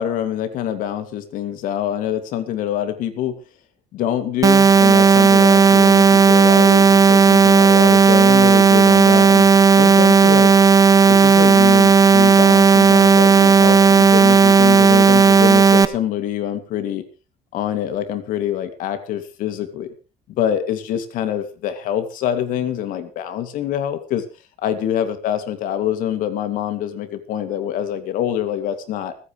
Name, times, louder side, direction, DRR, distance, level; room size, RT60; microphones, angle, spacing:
voice 1, 0.0-3.4 3.9-9.5 9.8-10.5 11.1-17.0 17.5-19.9 20.3-24.2 24.6-29.1, left 10 dB, 75° left, 8 dB, 2.6 m, -25 dB
sound 1, 4.4-15.8, right 5 dB, 25° right, 1.1 m, -12 dB
29.5 x 9.8 x 3.3 m, 0.32 s
cardioid pair, 125°, 14 cm